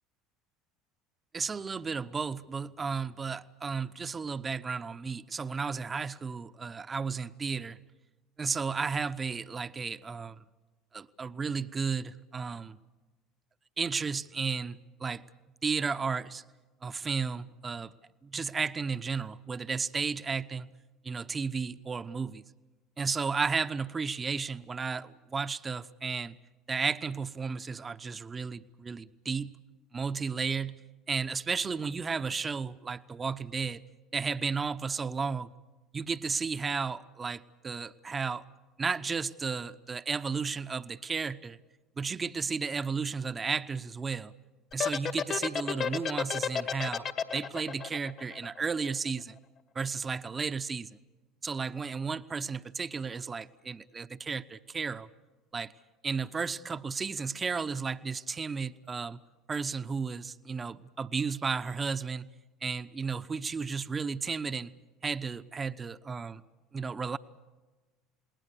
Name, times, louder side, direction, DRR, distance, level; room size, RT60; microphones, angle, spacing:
voice 1, 1.3-7.8 8.4-10.4 10.9-12.8 13.8-15.2 15.6-16.4 16.8-17.9 18.2-20.7 21.0-22.4 23.0-26.4 26.7-29.5 29.9-30.7 31.1-33.8 34.1-35.5 35.9-38.4 38.8-41.6 42.0-44.3 44.7-47.1 47.3-49.4 49.7-51.0 51.4-55.1 55.5-55.7 56.0-59.2 59.5-62.3 62.6-64.7 65.0-66.4 66.7-67.2, right 5 dB, 25° right, 12 dB, 0.9 m, -33 dB
sound 1, 44.7-49.1, left 7 dB, 45° left, 2.0 m, -31 dB
28.5 x 20.0 x 7.0 m, 1.2 s
hypercardioid pair, 70°, 0 cm